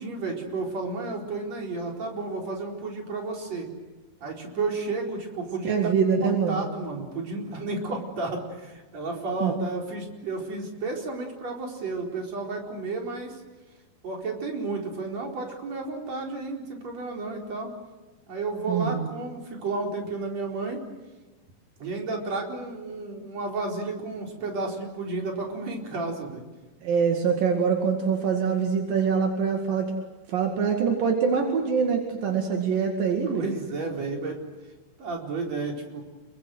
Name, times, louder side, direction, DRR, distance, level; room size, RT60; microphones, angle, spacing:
voice 1, 0.0-3.7 4.2-5.9 6.2-13.4 14.0-17.7 18.3-20.8 21.8-26.4 33.3-34.4 35.0-36.0, right 3 dB, 50° right, 1 dB, 5.5 m, -32 dB
voice 2, 5.7-6.6 9.4-9.5 18.7-19.1 26.8-29.9 30.3-33.5, right 6 dB, 80° right, 3 dB, 3.9 m, -24 dB
28.0 x 23.0 x 8.0 m, 1.2 s
omnidirectional pair, 4.0 m